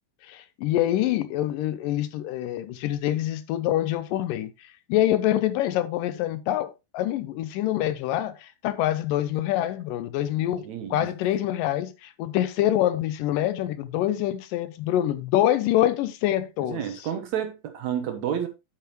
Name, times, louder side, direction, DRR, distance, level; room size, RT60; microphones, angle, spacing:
voice 1, 0.2-10.7 10.9-16.8, left 13 dB, 80° left, 2.2 m, -25 dB
voice 2, 10.6-11.1 16.7-18.5, right 9 dB, 70° right, 1.9 m, -30 dB
9.1 x 8.4 x 3.0 m
omnidirectional pair, 4.1 m